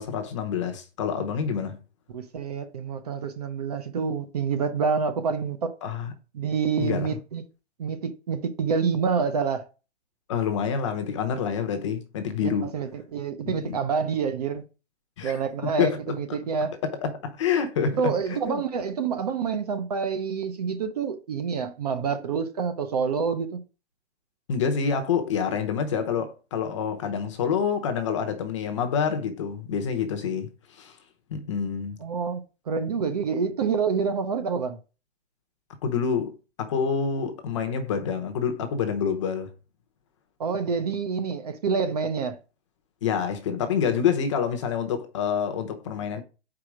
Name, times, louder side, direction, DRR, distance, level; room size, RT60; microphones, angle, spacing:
voice 1, 0.0-1.8 5.8-6.1 6.8-7.2 10.3-12.7 13.4-13.7 15.2-15.3 15.8-16.0 16.8-18.0 18.3-18.6 24.5-31.0 31.3-32.0 35.8-39.5 43.0-46.2, left 7 dB, 25° left, 0.9 m, -27 dB
voice 2, 2.1-5.7 6.3-7.4 7.8-9.6 12.4-14.6 15.2-16.7 17.8-23.6 32.0-32.4 32.7-34.8 40.4-42.4, right 5 dB, 35° right, 0.7 m, -27 dB
4.9 x 4.7 x 6.0 m
hypercardioid pair, 165°, 34 cm